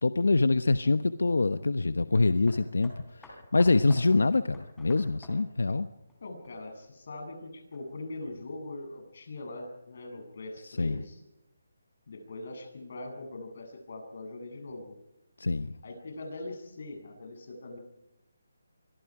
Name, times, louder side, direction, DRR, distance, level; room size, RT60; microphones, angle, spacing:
voice 1, 0.0-5.9 10.6-11.0 15.4-15.7, left 3 dB, 85° left, 12 dB, 1.1 m, -25 dB
Hammer, 2.1-6.9 7.7-7.8, left 1 dB, 5° left, 4.0 m, -51 dB
voice 2, 6.2-11.2 12.1-15.0 15.8-17.8, left 2 dB, 50° left, 4 dB, 8.0 m, -42 dB
26.5 x 24.5 x 4.9 m, 0.90 s
hypercardioid pair, 170°, 0 cm